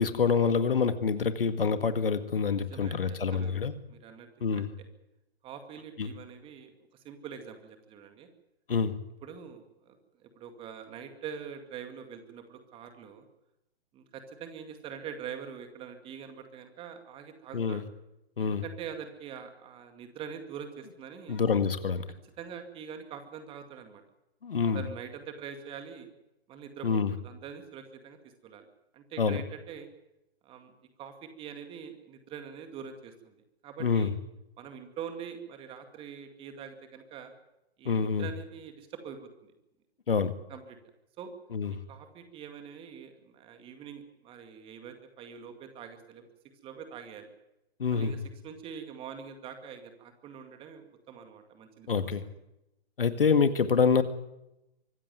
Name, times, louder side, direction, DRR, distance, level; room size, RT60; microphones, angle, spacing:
voice 1, 0.0-3.7 4.4-4.7 6.0-6.1 8.7-8.9 17.5-17.8 18.4-18.6 21.3-22.0 24.4-24.8 26.8-27.1 29.2-29.4 33.8-34.1 37.9-38.3 40.1-40.3 41.5-41.7 47.8-48.1 51.9-52.2 53.0-54.0, left 5 dB, 60° left, 10 dB, 1.9 m, -26 dB
voice 2, 2.5-4.3 4.5-4.9 5.4-6.7 7.0-8.3 9.2-10.0 10.2-13.2 13.9-17.8 18.4-21.4 22.4-24.0 24.7-26.1 26.5-28.2 28.4-28.6 28.9-29.9 30.4-30.7 31.0-33.3 33.6-34.1 34.6-37.3 37.8-39.5 40.5-40.8 41.2-41.3 41.9-46.3 46.6-47.3 47.9-52.1, right 7 dB, 15° right, 7 dB, 2.2 m, -44 dB
24.5 x 15.0 x 9.3 m, 0.91 s
figure-of-eight pair, 125°, 32 cm